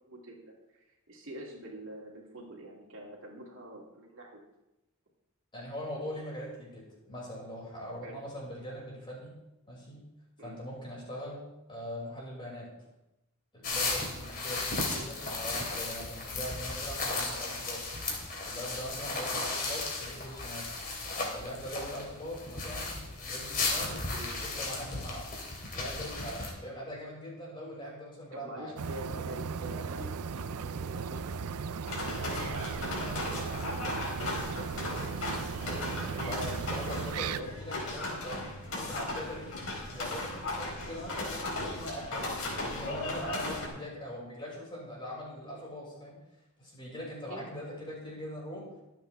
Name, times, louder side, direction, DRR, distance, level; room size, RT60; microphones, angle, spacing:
voice 1, 0.1-4.4 8.0-8.2 10.4-10.6 23.9-24.4 28.3-34.9 37.1-37.5 47.3-47.8, right 1 dB, 60° right, -2 dB, 2.6 m, -46 dB
voice 2, 5.5-9.3 9.7-10.0 10.4-11.4 11.7-12.7 13.5-17.9 18.4-20.7 21.2-22.9 23.2-24.0 24.4-25.3 25.7-28.7 35.6-38.4 38.7-39.6 39.9-46.2 46.6-48.7, equal, 20° left, -4 dB, 5.7 m, -41 dB
sound 1, 13.6-26.5, left 3 dB, 40° left, 3.1 m, -35 dB
sound 2, 28.8-37.4, right 5 dB, 85° right, 0.5 m, -37 dB
sound 3, 31.9-43.7, left 2 dB, 65° left, 4.2 m, -37 dB
23.5 x 8.3 x 3.4 m, 0.94 s
head